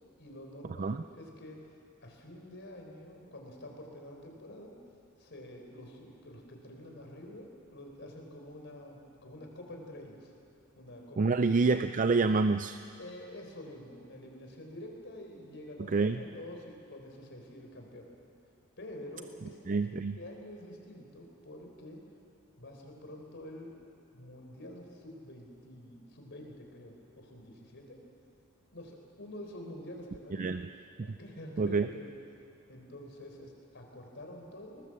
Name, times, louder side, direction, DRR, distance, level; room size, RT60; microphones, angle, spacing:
voice 1, 0.2-1.6 2.0-4.8 5.2-10.3 10.8-11.8 13.0-18.1 18.8-19.6 20.2-22.0 22.6-23.7 24.1-28.0 28.7-30.6 31.0-32.1 32.7-34.8, left 1 dB, 55° left, 1 dB, 4.1 m, -47 dB
voice 2, 11.2-12.8 15.9-16.2 19.7-20.1 30.4-30.7 31.0-31.2 31.6-31.9, right 4 dB, 35° right, 10 dB, 0.4 m, -27 dB
21.5 x 19.0 x 7.7 m, 2.5 s
head